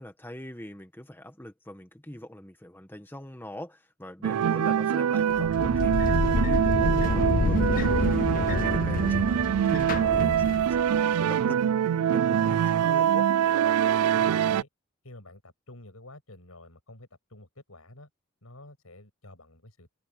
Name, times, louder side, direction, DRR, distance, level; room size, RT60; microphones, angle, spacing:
voice 1, 0.0-6.0 6.3-9.3 9.6-13.3, left 1 dB, 10° left, 1.7 m, -42 dB
sound 1, 4.2-14.6, right 9 dB, 90° right, 0.3 m, -24 dB
sound 2, 5.3-11.0, left 4 dB, 40° left, 0.4 m, -28 dB
voice 2, 14.1-14.7 15.0-18.1 18.4-19.9, left 1 dB, 80° left, 6.9 m, -49 dB
open air
head